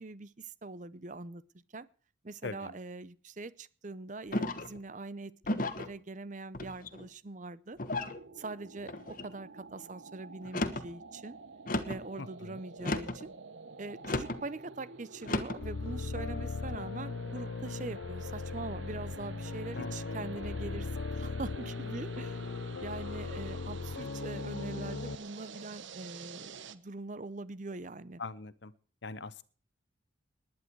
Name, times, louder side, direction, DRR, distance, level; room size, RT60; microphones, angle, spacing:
voice 1, 0.0-1.4 1.7-1.9 2.2-7.8 8.4-11.4 11.8-13.3 13.8-22.5 22.8-28.2, right 3 dB, 40° right, 17 dB, 0.7 m, -43 dB
voice 2, 2.4-2.7 12.2-12.6 19.8-20.3 28.2-28.7 29.0-29.4, left 3 dB, 60° left, 16 dB, 0.9 m, -42 dB
sound 1, 4.3-4.8 5.4-5.9 6.5-7.1 7.8-8.2 8.9-9.3 10.4-10.9 11.7-12.1 12.8-13.2 14.0-14.4 15.2-15.6, left 2 dB, 45° left, 1.2 m, -34 dB
sound 2, 8.0-26.8, right 4 dB, 70° right, 1.1 m, -50 dB
sound 3, 15.6-25.2, left 4 dB, 85° left, 0.6 m, -38 dB
19.5 x 10.5 x 4.6 m, 0.40 s
head